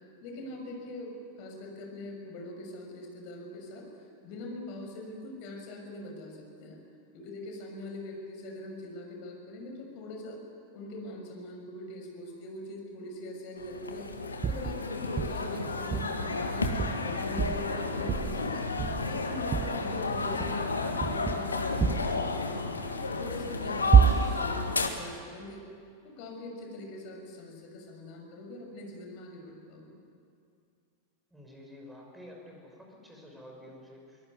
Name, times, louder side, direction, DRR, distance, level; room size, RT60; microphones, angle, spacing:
voice 1, 0.2-6.8 7.1-10.4 10.7-14.1 14.5-16.7 17.0-18.7 19.0-20.7 21.0-22.6 23.0-25.6 26.0-30.0, left 1 dB, 45° left, 2 dB, 6.1 m, -42 dB
sound 1, 13.6-24.9, left 3 dB, 75° left, 1.8 m, -32 dB
sound 2, 14.4-14.8 15.2-15.5 15.9-16.2 16.6-17.1 17.4-17.7 18.1-18.5 18.8-19.2 19.5-19.8 20.3-20.6 21.0-21.4 21.8-22.2 23.9-24.5, right 7 dB, 25° right, 0.5 m, -26 dB
voice 2, 31.3-34.2, left 1 dB, 5° right, 0 dB, 6.1 m, -49 dB
23.5 x 19.5 x 9.6 m, 2.4 s
figure-of-eight pair, 90°, 0 cm